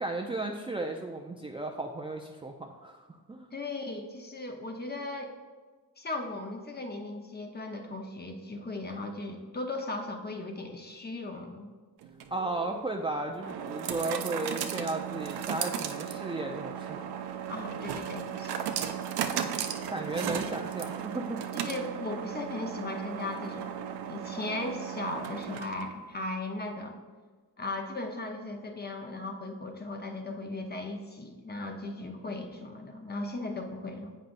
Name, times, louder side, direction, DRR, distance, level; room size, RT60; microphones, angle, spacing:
voice 1, 0.0-3.5 12.3-17.1 19.9-21.7, right 2 dB, 15° right, 0 dB, 0.4 m, -35 dB
voice 2, 3.5-5.3 6.0-11.7 17.5-18.7 21.6-27.0 27.6-34.1, left 2 dB, 25° left, 3 dB, 0.9 m, -37 dB
sound 1, 12.0-26.0, right 9 dB, 85° right, 0.5 m, -36 dB
7.6 x 5.4 x 2.6 m, 1.4 s
cardioid pair, 65°, 39 cm